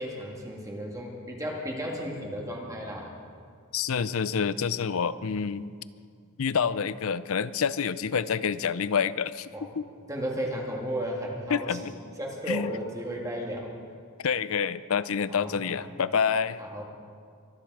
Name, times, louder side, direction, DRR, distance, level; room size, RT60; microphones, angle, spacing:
voice 1, 0.0-3.1 9.5-9.7 10.1-13.7 15.3-15.8 16.6-16.8, equal, 15° right, -1 dB, 2.0 m, -34 dB
voice 2, 3.7-5.6 6.4-9.5 9.8-9.9 11.5-11.8 12.5-12.7 14.2-16.6, left 6 dB, 65° left, 16 dB, 0.5 m, -27 dB
24.0 x 10.5 x 4.8 m, 2.1 s
head